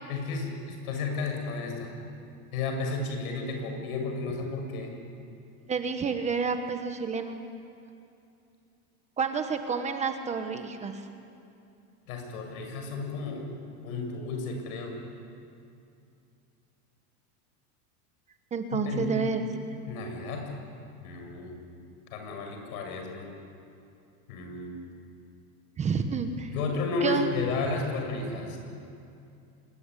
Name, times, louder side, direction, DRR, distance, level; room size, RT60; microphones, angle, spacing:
voice 1, 0.1-1.9 2.5-4.9 12.1-13.5 13.8-15.0 18.7-19.1 19.9-20.6 21.0-21.6 22.1-23.3 24.3-24.8 26.5-28.6, left 3 dB, 75° left, 3 dB, 7.5 m, -33 dB
voice 2, 5.7-7.4 9.2-11.0 18.5-19.4 25.8-26.5 27.0-27.3, right 5 dB, 15° right, 7 dB, 1.1 m, -29 dB
26.0 x 22.5 x 10.0 m, 2.6 s
supercardioid pair, 170°, 44 cm